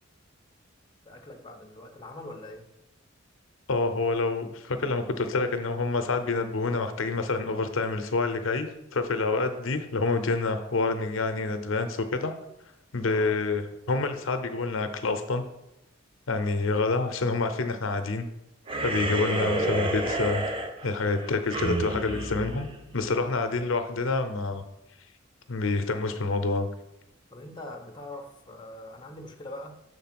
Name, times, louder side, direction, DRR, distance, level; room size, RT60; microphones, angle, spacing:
voice 1, 1.0-2.7 13.1-13.4 27.3-29.8, left 1 dB, 25° left, 3 dB, 0.7 m, -43 dB
voice 2, 3.7-12.3 12.9-15.4 16.3-18.3 18.8-20.4 20.8-24.6 25.5-26.7, left 3 dB, 80° left, 8 dB, 0.6 m, -27 dB
sound 1, 18.7-23.4, right 2 dB, 25° right, 0.7 m, -30 dB
6.7 x 3.7 x 5.9 m, 0.86 s
head